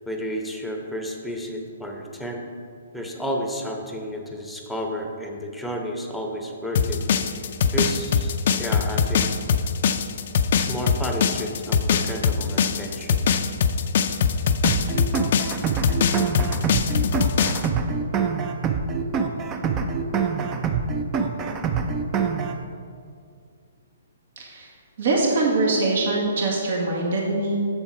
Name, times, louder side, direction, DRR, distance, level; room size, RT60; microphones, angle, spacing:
voice 1, 0.1-2.4 2.9-7.0 7.7-9.3 10.5-13.2, equal, ahead, 2 dB, 0.9 m, -31 dB
sound 1, 6.8-17.7, left 7 dB, 55° left, 0.4 m, -22 dB
sound 2, 14.6-22.6, right 5 dB, 20° right, 0.5 m, -25 dB
voice 2, 24.4-24.7 25.0-27.5, right 2 dB, 60° right, -1 dB, 1.6 m, -23 dB
7.1 x 6.9 x 4.8 m, 2.3 s
hypercardioid pair, 145°, 0 cm